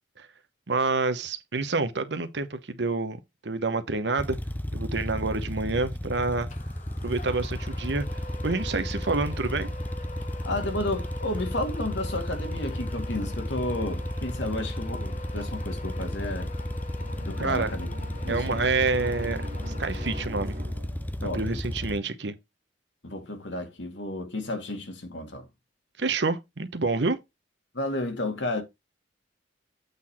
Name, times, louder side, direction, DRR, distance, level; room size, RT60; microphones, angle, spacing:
voice 1, 0.7-4.4 4.7-6.5 7.0-8.1 8.4-9.7 17.4-17.7 18.3-20.6 21.2-22.3 26.0-27.2, right 3 dB, 70° right, 1.0 m, -28 dB
sound 1, 4.2-22.0, left 1 dB, 10° left, 0.5 m, -33 dB
sound 2, 6.5-20.8, left 2 dB, 40° left, 1.2 m, -44 dB
voice 2, 10.4-16.5 17.3-17.9 18.2-18.7 21.2-21.6 23.0-25.5 27.7-28.6, left 1 dB, 75° left, 2.1 m, -32 dB
sound 3, 15.8-21.2, right 1 dB, 45° right, 1.9 m, -45 dB
8.2 x 3.9 x 4.4 m
head